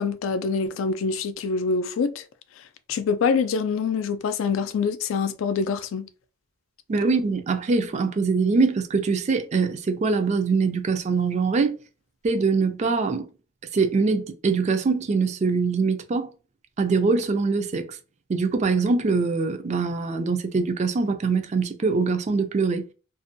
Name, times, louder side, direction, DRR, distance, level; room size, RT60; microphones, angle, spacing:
voice 1, 0.0-2.2 2.9-6.1, left 5 dB, 70° left, 0.3 m, -25 dB
voice 2, 6.9-11.7 12.2-13.3 13.7-16.3 16.8-18.0 18.3-22.9, right 4 dB, 35° right, 0.3 m, -23 dB
2.5 x 2.1 x 2.6 m
head